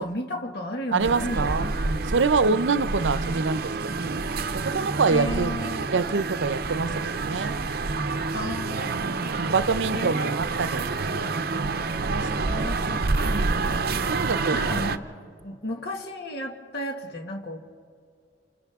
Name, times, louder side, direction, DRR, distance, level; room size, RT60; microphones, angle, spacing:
voice 1, 0.0-1.9 2.4-3.0 5.1-5.8 8.3-9.5 9.9-10.3 12.5-13.7 14.0-17.6, left 1 dB, 60° left, 2 dB, 2.0 m, -34 dB
voice 2, 0.9-1.6 2.1-4.2 4.5-5.5 5.9-6.9 7.2-7.6 9.2-10.9 12.0-13.6 14.1-14.6, right 4 dB, 85° right, 14 dB, 0.7 m, -26 dB
sound 1, 1.0-15.0, right 3 dB, 55° right, 0.7 m, -28 dB
29.5 x 28.0 x 3.6 m, 2.4 s
head